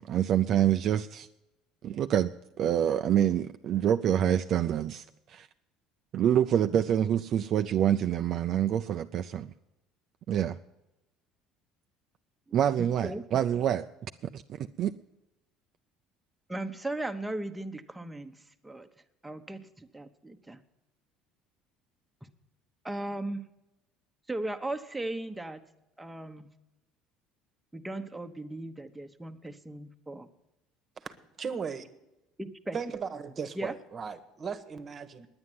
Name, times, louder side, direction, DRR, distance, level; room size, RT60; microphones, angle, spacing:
voice 1, 0.0-1.3 1.8-2.3 2.6-5.5 6.1-9.5 10.3-10.6 12.5-13.9 14.3-14.9, right 10 dB, 55° right, 7 dB, 0.4 m, -26 dB
voice 2, 12.8-13.2 16.5-18.4 18.6-18.9 19.2-20.6 22.8-23.5 24.3-25.6 26.0-26.5 27.7-30.3 32.4-32.8 33.6-33.7, right 1 dB, 10° right, 5 dB, 0.9 m, -37 dB
voice 3, 31.0-31.9 32.7-35.3, right 6 dB, 40° right, 10 dB, 1.1 m, -37 dB
9.7 x 9.5 x 9.3 m, 0.95 s
supercardioid pair, 90°, 0 cm